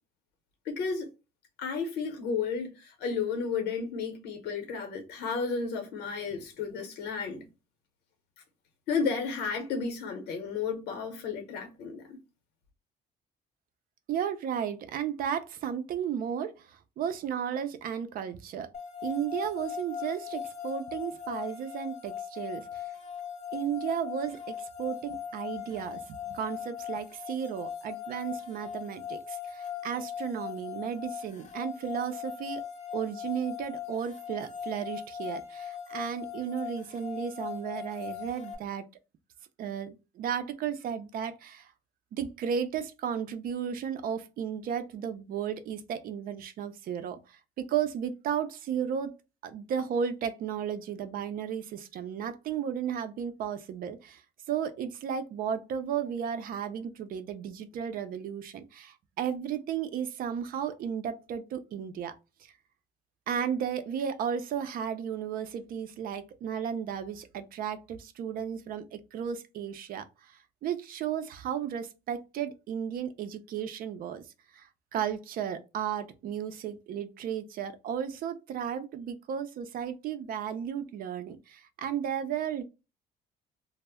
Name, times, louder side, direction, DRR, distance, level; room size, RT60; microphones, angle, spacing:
voice 1, 0.6-1.1 1.6-7.5 8.9-12.2, left 5 dB, 75° left, 0.8 m, -32 dB
voice 2, 14.1-18.7 19.0-22.8 23.5-32.6 32.9-38.9 39.6-41.7 42.1-49.1 49.4-54.2 54.5-62.1 62.4-62.5 63.3-74.2 74.5-82.6, right 8 dB, 60° right, 0.4 m, -34 dB
sound 1, 18.7-38.6, left 8 dB, 45° left, 0.5 m, -39 dB
2.1 x 2.0 x 3.4 m
cardioid pair, 110°, 17 cm